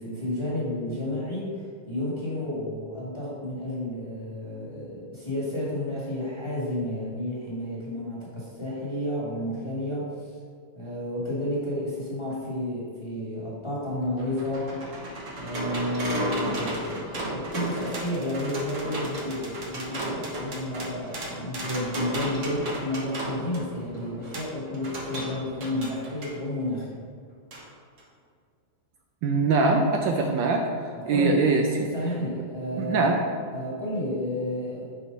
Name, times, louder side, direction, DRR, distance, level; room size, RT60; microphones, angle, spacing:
voice 1, 0.0-1.6 1.9-10.3 10.7-14.8 15.4-27.0 30.9-33.2 33.5-34.8, left 1 dB, 15° left, -8 dB, 1.4 m, -31 dB
sound 1, 13.8-26.4 27.5-27.6 28.0-28.1, right 1 dB, 50° right, 1.1 m, -34 dB
voice 2, 29.2-30.7 31.1-31.9 32.8-33.2, right 3 dB, 75° right, 2 dB, 1.2 m, -22 dB
5.0 x 4.5 x 5.2 m, 2.1 s
omnidirectional pair, 2.2 m